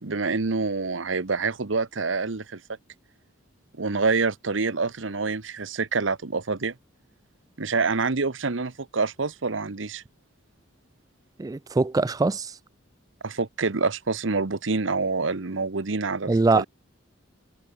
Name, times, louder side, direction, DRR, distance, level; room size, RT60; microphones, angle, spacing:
voice 1, 0.0-2.6 3.8-6.7 7.6-10.0 13.2-16.6, right 4 dB, 75° right, 1.1 m, -26 dB
voice 2, 11.4-12.6 16.3-16.6, right 3 dB, 20° right, 0.3 m, -22 dB
head